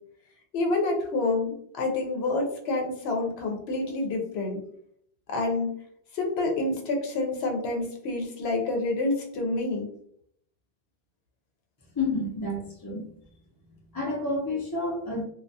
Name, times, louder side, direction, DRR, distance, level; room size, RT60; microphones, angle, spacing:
voice 1, 0.5-4.6 5.3-5.7 6.1-9.9, left 2 dB, 75° left, 1 dB, 0.8 m, -28 dB
voice 2, 12.0-13.1 13.9-15.2, left 2 dB, 30° left, -3 dB, 0.5 m, -29 dB
2.3 x 2.2 x 2.6 m, 0.68 s
omnidirectional pair, 1.1 m